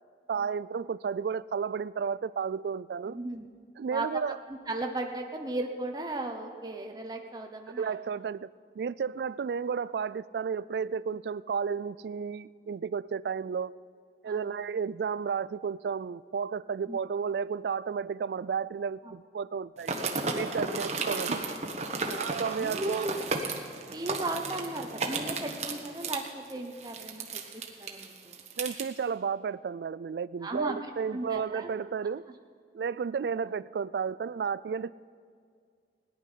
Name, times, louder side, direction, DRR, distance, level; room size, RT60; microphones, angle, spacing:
voice 1, 0.3-3.2 3.8-4.4 7.7-8.5 8.8-13.7 14.2-20.0 20.3-21.4 22.2-23.1 28.6-32.2 32.7-34.9, right 6 dB, 65° right, 19 dB, 0.3 m, -32 dB
voice 2, 3.1-3.5 3.9-4.2 4.5-8.0 14.3-14.6 16.9-17.0 19.0-19.1 20.5-20.7 22.0-23.2 23.9-27.4 27.8-28.5 30.4-30.8 31.1-31.8, right 2 dB, 20° right, 3 dB, 0.9 m, -36 dB
sound 1, 19.8-28.8, right 3 dB, 40° right, 1.2 m, -34 dB
17.5 x 10.5 x 5.7 m, 2.1 s
head